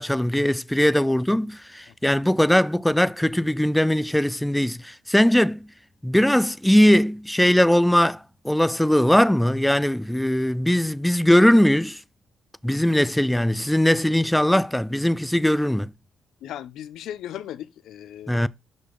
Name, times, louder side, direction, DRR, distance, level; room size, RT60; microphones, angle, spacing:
voice 1, 0.0-5.7 6.0-12.0 12.6-15.9 18.3-18.5, left 1 dB, 5° left, 0.4 m, -20 dB
voice 2, 16.4-18.3, left 11 dB, 80° left, 0.6 m, -37 dB
6.1 x 5.2 x 3.7 m
cardioid pair, 90°, 0 cm